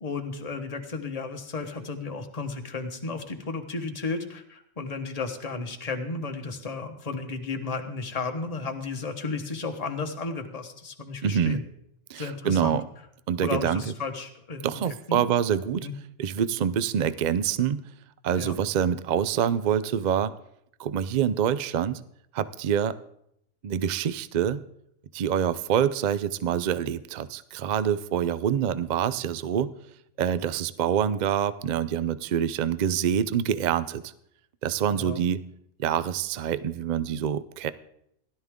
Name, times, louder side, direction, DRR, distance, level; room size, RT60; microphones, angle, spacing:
voice 1, 0.0-11.6 12.1-12.8 13.4-14.8 15.1-15.2 15.8-15.9 18.3-18.6 34.9-35.2, left 4 dB, 30° left, 5 dB, 1.2 m, -33 dB
voice 2, 11.2-11.6 12.1-12.8 13.3-13.9 14.6-15.9 16.2-17.8 18.2-20.3 20.8-22.0 22.3-23.0 23.6-24.6 25.1-29.7 30.2-34.1 34.6-35.4 35.8-37.7, right 8 dB, 80° right, 15 dB, 0.4 m, -26 dB
16.5 x 12.0 x 3.6 m, 0.75 s
omnidirectional pair, 1.5 m